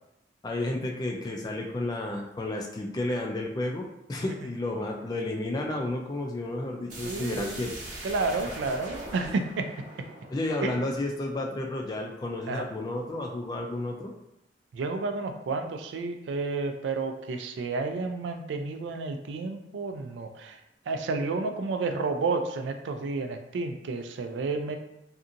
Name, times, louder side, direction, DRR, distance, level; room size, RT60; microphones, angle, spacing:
voice 1, 0.4-7.7 8.3-8.4 10.3-14.1, left 2 dB, 20° left, 1 dB, 0.3 m, -32 dB
sound 1, 6.9-11.6, right 1 dB, 45° right, 0.8 m, -42 dB
voice 2, 7.0-7.6 8.0-9.7 10.6-10.8 12.5-12.6 14.7-20.6 20.9-24.8, right 3 dB, 85° right, 6 dB, 0.3 m, -31 dB
2.7 x 2.5 x 2.5 m, 0.85 s
head